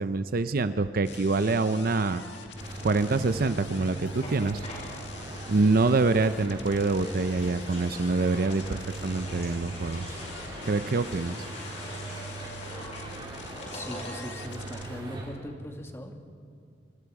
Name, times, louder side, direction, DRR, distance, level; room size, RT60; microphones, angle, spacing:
voice 1, 0.0-2.2 2.8-4.6 5.5-10.0 10.7-11.4, right 3 dB, 50° right, 11 dB, 0.6 m, -25 dB
sound 1, 1.0-14.9, left 4 dB, 70° left, 2.0 m, -45 dB
sound 2, 2.6-15.3, right 2 dB, 25° right, 4.0 m, -40 dB
sound 3, 4.2-5.3 6.2-14.5 14.8-14.9 15.1-15.4, left 1 dB, 35° left, 5.6 m, -45 dB
voice 2, 13.6-16.1, equal, 15° left, 4 dB, 1.8 m, -40 dB
26.5 x 25.5 x 4.8 m, 2.3 s
head